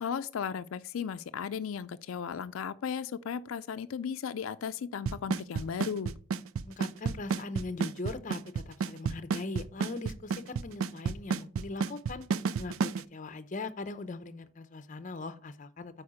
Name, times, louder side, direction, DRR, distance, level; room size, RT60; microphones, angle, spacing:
voice 1, 0.0-6.1, left 7 dB, 85° left, 0.4 m, -35 dB
Drum kit / Snare drum / Bass drum, 5.1-13.0, right 5 dB, 85° right, 0.4 m, -30 dB
voice 2, 6.6-12.2 12.6-16.0, left 3 dB, 40° left, 0.6 m, -40 dB
8.7 x 4.7 x 4.9 m
head